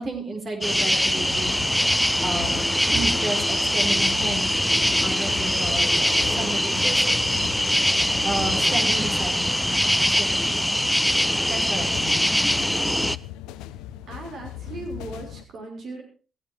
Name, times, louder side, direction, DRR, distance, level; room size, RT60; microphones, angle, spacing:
voice 1, 0.0-1.6 2.2-2.6 2.9-4.5 5.0-7.0 8.0-9.6 10.1-10.4 11.5-12.1, right 2 dB, 50° right, 2 dB, 4.3 m, -32 dB
sound 1, 0.6-13.2, equal, 5° left, 0.6 m, -22 dB
sound 2, 1.1-15.5, left 12 dB, 80° left, 0.9 m, -39 dB
voice 2, 14.1-16.0, right 3 dB, 65° right, 2 dB, 5.9 m, -37 dB
17.0 x 13.0 x 4.6 m, 0.38 s
hypercardioid pair, 45°, 0 cm